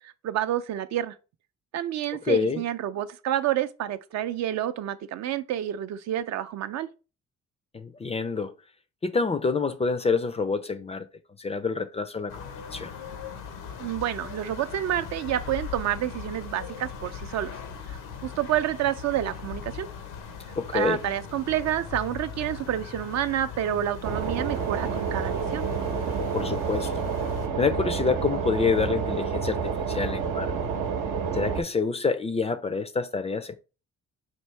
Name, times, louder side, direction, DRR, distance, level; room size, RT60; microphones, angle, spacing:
voice 1, 0.0-1.2 1.7-6.9 13.8-17.6 17.9-19.9 20.7-25.7, right 11 dB, 60° right, 0.4 m, -29 dB
voice 2, 2.3-2.6 7.7-8.5 9.0-11.1 11.4-12.4 12.7-12.9 20.6-21.0 26.3-27.1 27.6-30.5 31.3-33.5, left 4 dB, 20° left, 0.4 m, -27 dB
sound 1, 12.3-27.5, left 6 dB, 80° left, 0.8 m, -40 dB
sound 2, 24.0-31.6, right 6 dB, 90° right, 0.8 m, -29 dB
4.5 x 2.7 x 3.2 m
cardioid pair, 90°, 30 cm